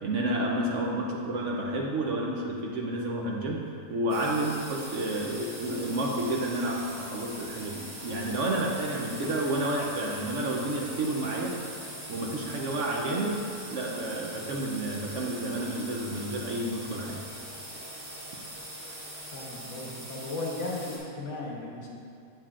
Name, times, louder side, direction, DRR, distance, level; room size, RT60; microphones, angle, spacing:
voice 1, 0.0-11.6 12.1-13.4 13.7-17.2, right 1 dB, 65° right, -1 dB, 0.9 m, -30 dB
sound 1, 4.1-21.0, right 1 dB, 35° right, 1.8 m, -42 dB
voice 2, 19.3-21.9, left 2 dB, 55° left, -3 dB, 1.2 m, -36 dB
7.6 x 7.3 x 2.4 m, 2.4 s
omnidirectional pair, 1.6 m